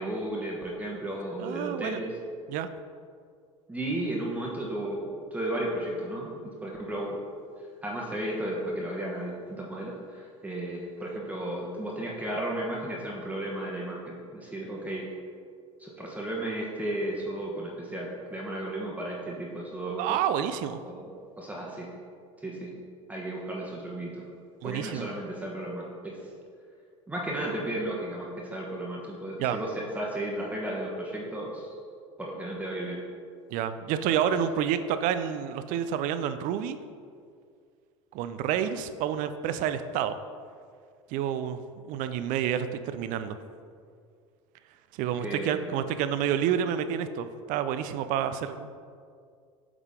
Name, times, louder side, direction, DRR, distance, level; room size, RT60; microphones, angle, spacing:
voice 1, 0.0-2.1 3.7-7.2 7.8-15.1 15.8-20.2 20.8-21.1 21.4-21.9 22.4-22.7 23.1-24.2 24.6-26.2 27.1-31.7 32.2-33.0 45.2-45.6, right 1 dB, 10° right, -4 dB, 1.1 m, -34 dB
voice 2, 1.4-2.0 2.5-2.7 20.0-20.8 24.6-25.1 29.4-29.6 33.5-36.8 38.1-40.1 41.1-43.4 45.0-48.7, right 9 dB, 55° right, 11 dB, 0.4 m, -29 dB
8.1 x 3.6 x 3.6 m, 2.2 s
hypercardioid pair, 80°, 16 cm